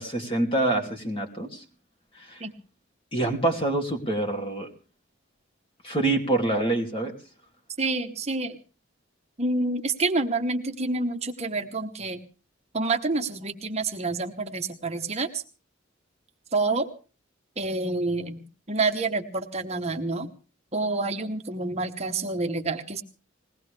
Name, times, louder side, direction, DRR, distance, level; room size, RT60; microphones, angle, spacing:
voice 1, 0.0-1.6 2.2-2.4 3.1-4.7 5.8-7.1, right 2 dB, 30° left, 3 dB, 2.7 m, -26 dB
voice 2, 7.8-8.6 9.4-12.2 12.7-15.4 16.5-16.9 17.6-18.4 18.7-20.3 20.7-23.0, right 3 dB, 35° right, 5 dB, 1.0 m, -28 dB
21.0 x 18.0 x 3.4 m, 0.36 s
head